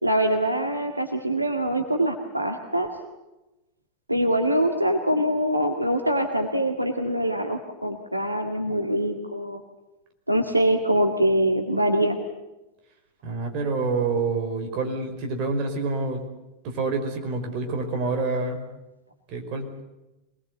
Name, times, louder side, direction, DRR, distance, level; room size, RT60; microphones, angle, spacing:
voice 1, 0.0-2.9 4.1-9.6 10.3-12.2, right 1 dB, 85° right, 4 dB, 1.9 m, -24 dB
voice 2, 13.2-16.2 16.6-18.6 19.3-19.8, right 3 dB, 40° right, 4 dB, 5.0 m, -27 dB
25.5 x 21.0 x 8.3 m, 1.0 s
figure-of-eight pair, 90°, 0 cm